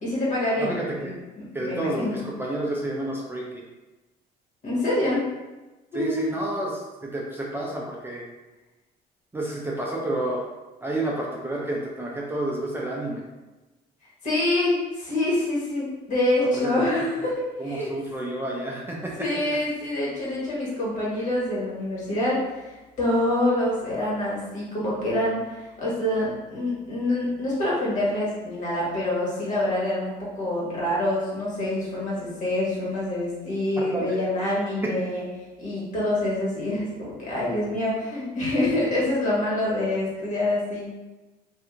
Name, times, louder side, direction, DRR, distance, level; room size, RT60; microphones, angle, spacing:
voice 1, 0.0-2.2 4.6-5.3 5.9-6.4 14.2-17.9 19.2-35.2 35.6-40.9, left 1 dB, 45° left, -6 dB, 1.4 m, -26 dB
voice 2, 0.6-1.1 1.5-3.5 5.9-8.2 9.3-10.4 10.8-13.2 17.6-19.1 33.8-34.2, right 1 dB, 15° right, -3 dB, 0.5 m, -30 dB
2.7 x 2.5 x 3.6 m, 1.1 s
cardioid pair, 110°, 17 cm